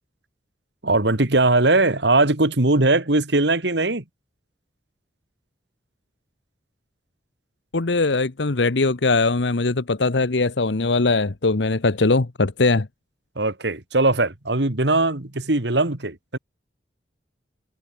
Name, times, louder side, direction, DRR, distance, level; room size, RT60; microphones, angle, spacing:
voice 1, 0.8-4.0 13.4-16.4, right 2 dB, 65° right, 2.1 m, -20 dB
voice 2, 7.7-12.9, left 3 dB, 75° left, 1.0 m, -21 dB
head